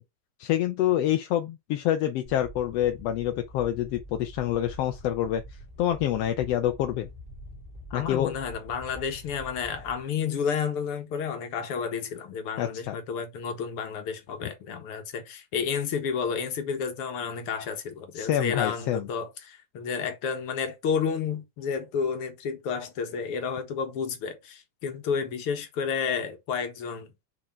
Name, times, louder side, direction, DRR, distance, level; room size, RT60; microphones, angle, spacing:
voice 1, 0.4-5.4 5.8-7.1 7.9-8.3 12.6-13.0 18.1-19.1, left 12 dB, 70° left, 1.6 m, -27 dB
sound 1, 2.2-10.0, equal, 20° right, 2.6 m, -45 dB
voice 2, 7.9-27.1, left 6 dB, 55° left, 2.1 m, -31 dB
6.3 x 4.4 x 4.4 m
omnidirectional pair, 3.3 m